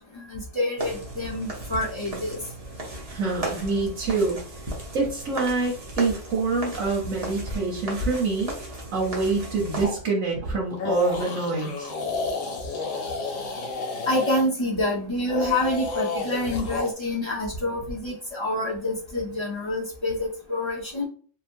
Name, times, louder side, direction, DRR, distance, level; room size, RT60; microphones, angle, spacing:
voice 1, 0.1-2.4 14.1-21.1, left 1 dB, 30° left, -5 dB, 0.6 m, -27 dB
sound 1, 0.8-9.9, right 1 dB, 35° right, 0.7 m, -36 dB
voice 2, 3.1-4.4 4.9-8.5 8.9-11.9, right 3 dB, 75° right, -4 dB, 1.2 m, -26 dB
sound 2, 9.8-10.0 10.7-14.5 15.2-16.9, left 3 dB, 85° left, 1.0 m, -30 dB
2.9 x 2.2 x 2.5 m, 0.43 s
omnidirectional pair, 1.4 m